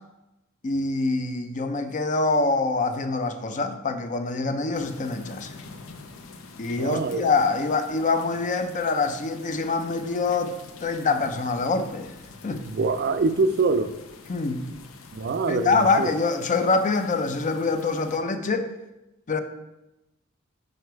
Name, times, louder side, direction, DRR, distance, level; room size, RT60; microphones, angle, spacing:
voice 1, 0.6-5.6 6.6-12.1 12.4-12.6 14.3-14.7 15.5-18.7 19.3-19.4, left 3 dB, 40° left, 0.5 m, -25 dB
sound 1, 4.7-18.2, left 4 dB, 75° left, 0.6 m, -46 dB
voice 2, 6.8-7.3 12.6-14.0 15.1-16.1, right 4 dB, 50° right, 0.4 m, -24 dB
6.5 x 4.9 x 4.6 m
head